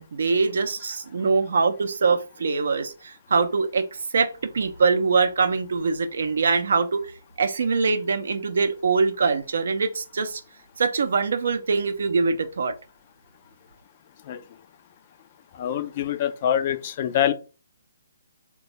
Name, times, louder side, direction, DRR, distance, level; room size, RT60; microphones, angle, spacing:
voice 1, 0.0-3.9 4.1-4.3 4.5-7.0 7.4-10.4 10.8-12.7, right 4 dB, 55° right, 0.5 m, -23 dB
voice 2, 15.6-17.3, left 10 dB, 35° left, 0.3 m, -24 dB
3.2 x 2.2 x 2.8 m
figure-of-eight pair, 135°, 0 cm